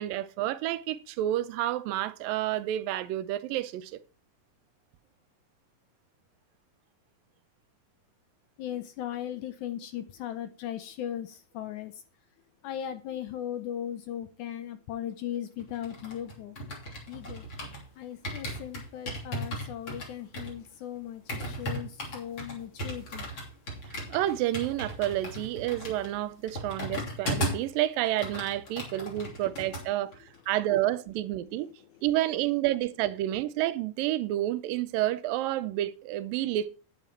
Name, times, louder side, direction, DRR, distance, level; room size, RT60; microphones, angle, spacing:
voice 1, 0.0-3.9 24.1-30.1 30.5-31.7 32.0-36.7, right 14 dB, 80° right, 2.3 m, -29 dB
voice 2, 8.6-12.0 12.6-16.6 17.1-17.5 18.0-23.3 31.6-32.1, left 10 dB, 75° left, 1.9 m, -38 dB
sound 1, 15.6-17.9 18.2-27.7 28.0-29.8 30.1-30.4, equal, 35° left, 3.4 m, -37 dB
9.7 x 9.1 x 4.4 m
omnidirectional pair, 4.1 m